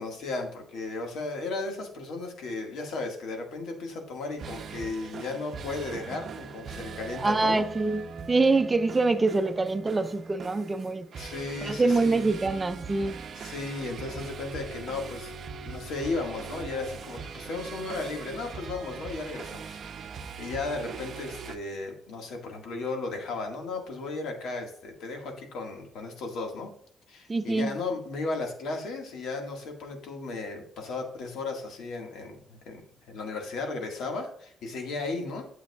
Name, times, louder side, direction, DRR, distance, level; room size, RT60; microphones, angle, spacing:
voice 1, 0.0-7.6 11.2-12.3 13.4-15.3 15.7-19.8 20.4-26.7 27.1-35.5, left 3 dB, 75° left, 1.7 m, -35 dB
sound 1, 4.2-21.6, right 5 dB, 55° right, 0.7 m, -41 dB
voice 2, 7.2-11.1 11.6-13.2 27.3-27.8, right 3 dB, 25° right, 0.7 m, -25 dB
9.4 x 7.4 x 2.3 m
cardioid pair, 90°, 0 cm